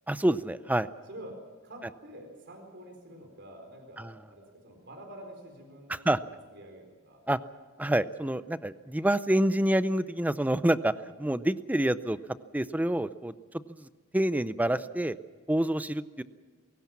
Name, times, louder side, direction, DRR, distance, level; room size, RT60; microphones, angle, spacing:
voice 1, 0.1-0.9 4.0-4.1 5.9-6.2 7.3-7.4 7.8-10.9 11.2-12.2 12.5-13.3 13.7-13.9 14.1-15.2 15.5-16.2, right 1 dB, 10° right, 14 dB, 0.5 m, -27 dB
voice 2, 1.0-6.3 6.5-7.2, right 1 dB, 55° right, 3 dB, 4.2 m, -47 dB
22.0 x 18.0 x 7.3 m, 1.5 s
head